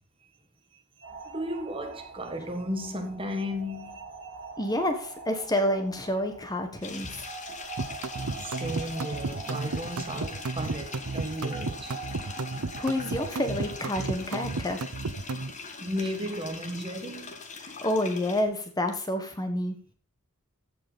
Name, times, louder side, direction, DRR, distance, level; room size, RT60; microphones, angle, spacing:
voice 1, 0.7-4.5 7.0-7.3 8.2-12.1 15.8-17.3, equal, 25° right, 1.7 m, -35 dB
sound 1, 1.0-14.3, right 3 dB, 45° right, 4.8 m, -44 dB
voice 2, 4.6-7.2 12.8-14.8 17.6-19.8, left 1 dB, 15° left, 1.3 m, -29 dB
sound 2, 6.8-18.4, left 4 dB, 35° left, 1.8 m, -42 dB
sound 3, 7.8-15.5, right 3 dB, 80° right, 0.8 m, -33 dB
15.0 x 5.9 x 5.2 m
head